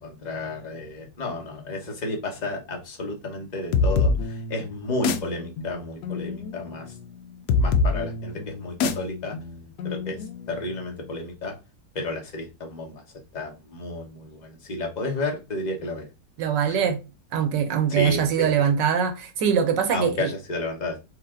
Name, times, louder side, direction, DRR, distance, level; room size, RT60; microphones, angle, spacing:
voice 1, 0.0-6.9 7.6-9.4 9.8-11.5 11.9-13.0 13.3-16.1 16.7-16.8 17.9-18.7 19.9-21.0, left 2 dB, 30° left, 1.0 m, -32 dB
sound 1, 3.7-11.1, left 4 dB, 75° left, 1.1 m, -27 dB
voice 2, 16.4-17.0 17.3-20.3, right 7 dB, 75° right, 1.5 m, -22 dB
4.7 x 2.8 x 3.7 m
omnidirectional pair, 2.0 m